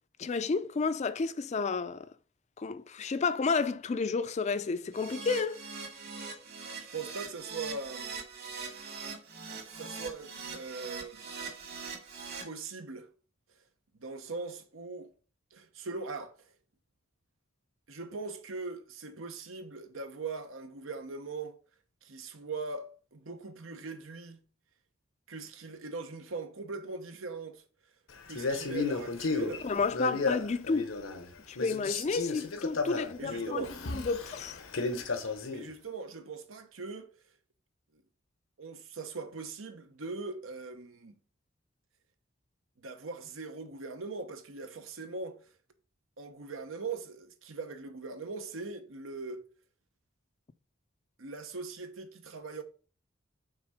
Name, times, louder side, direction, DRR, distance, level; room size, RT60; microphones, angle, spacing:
voice 1, 0.2-2.1 2.6-5.6 29.6-30.9 31.5-34.6, left 4 dB, 35° left, 0.4 m, -31 dB
Keyboard (musical), 4.9-12.4, right 5 dB, 55° right, 2.0 m, -42 dB
voice 2, 6.8-8.1 9.7-11.3 12.4-13.1 14.0-15.1 15.5-16.4 17.9-21.5 22.0-24.4 25.3-27.6 28.3-29.7 33.2-33.7 35.5-37.1 38.6-41.2 42.8-45.4 46.2-49.4 51.2-52.6, right 4 dB, 85° right, 1.0 m, -40 dB
Male speech man speaking, 28.3-31.3 31.6-35.7, left 3 dB, 85° left, 1.0 m, -33 dB
6.0 x 4.1 x 4.9 m
head